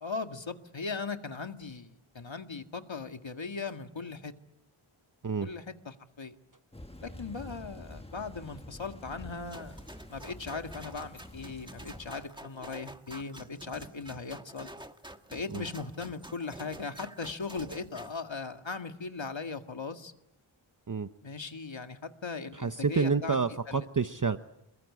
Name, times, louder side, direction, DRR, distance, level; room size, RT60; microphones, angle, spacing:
voice 1, 0.0-4.3 5.4-6.4 7.0-9.8 10.1-14.7 15.3-20.1 21.2-23.4 23.7-23.9, left 4 dB, 65° left, 6 dB, 1.9 m, -38 dB
Thunder / Rain, 6.7-12.3, left 1 dB, 10° left, 1.5 m, -48 dB
sound 1, 9.5-18.2, right 1 dB, 10° right, 1.6 m, -48 dB
voice 2, 22.5-24.4, right 5 dB, 40° right, 9 dB, 0.9 m, -29 dB
27.5 x 22.0 x 8.5 m, 0.83 s
wide cardioid pair, 65°, 49 cm